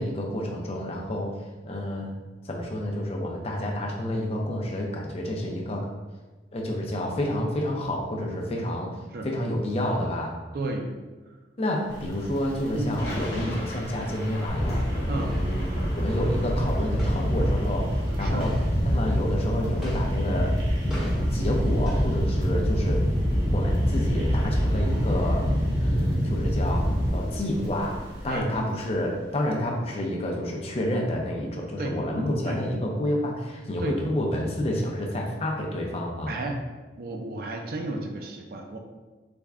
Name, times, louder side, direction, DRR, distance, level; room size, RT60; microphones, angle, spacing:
voice 1, 0.0-1.3 1.6-2.1 2.4-5.9 6.5-9.0 9.2-10.4 11.6-18.5 18.8-23.0 23.5-25.4 25.8-28.0 28.2-36.3, left 1 dB, 35° left, 0 dB, 0.5 m, -29 dB
voice 2, 10.5-10.9 12.7-12.9 15.1-15.3 18.2-18.5 28.3-28.5 31.8-31.9 32.5-32.6 33.8-34.0 36.3-36.6 37.0-38.8, right 2 dB, 55° right, 3 dB, 0.4 m, -32 dB
sound 1, 11.9-28.4, equal, 90° right, 0.8 m, -41 dB
Thunder / Rain, 12.1-29.6, equal, 60° left, 1.0 m, -38 dB
sound 2, 14.5-27.1, equal, 5° right, 1.0 m, -25 dB
3.4 x 2.2 x 3.5 m, 1.3 s
head